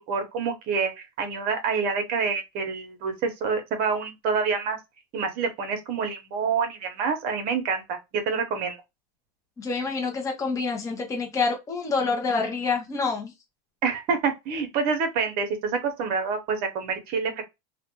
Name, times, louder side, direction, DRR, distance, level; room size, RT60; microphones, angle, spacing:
voice 1, 0.1-4.8 5.1-8.8 13.8-17.4, right 5 dB, 50° right, 0.8 m, -27 dB
voice 2, 9.6-13.3, left 4 dB, 15° left, 0.7 m, -27 dB
2.4 x 2.2 x 2.8 m
supercardioid pair, 135°, 20 cm